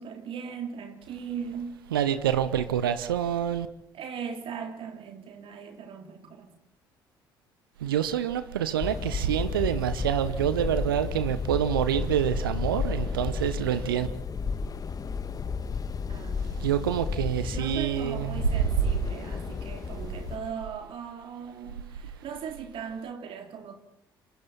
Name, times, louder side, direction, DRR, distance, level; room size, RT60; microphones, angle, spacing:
voice 1, 0.0-1.8 3.9-6.6 8.9-9.0 16.1-16.6 17.4-23.7, right 7 dB, 50° right, 3.6 m, -39 dB
voice 2, 1.9-3.7 7.8-14.1 16.6-18.4 19.3-19.4, right 10 dB, 75° right, 1.1 m, -27 dB
sound 1, 8.8-20.4, left 5 dB, 30° left, 1.7 m, -32 dB
27.5 x 26.0 x 4.3 m
figure-of-eight pair, 55°, 12 cm